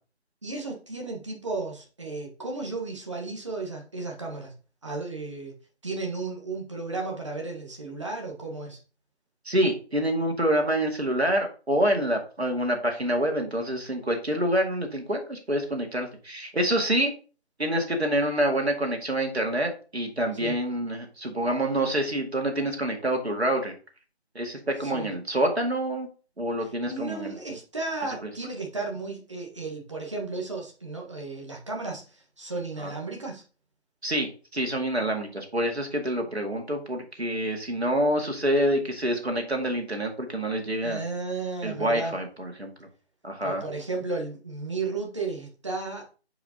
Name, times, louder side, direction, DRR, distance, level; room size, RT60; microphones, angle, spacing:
voice 1, 0.4-4.5 4.8-5.5 5.8-8.8 20.3-20.5 24.8-25.1 26.6-33.4 40.8-42.2 43.4-46.0, right 3 dB, 25° right, -1 dB, 1.3 m, -34 dB
voice 2, 9.5-17.1 17.6-23.7 24.4-26.1 26.4-27.3 28.2-28.3 32.8-32.9 34.0-41.0 41.6-42.7 43.2-43.6, right 1 dB, 70° right, 3 dB, 2.1 m, -27 dB
8.7 x 5.0 x 2.8 m, 0.36 s
figure-of-eight pair, 165°, 33 cm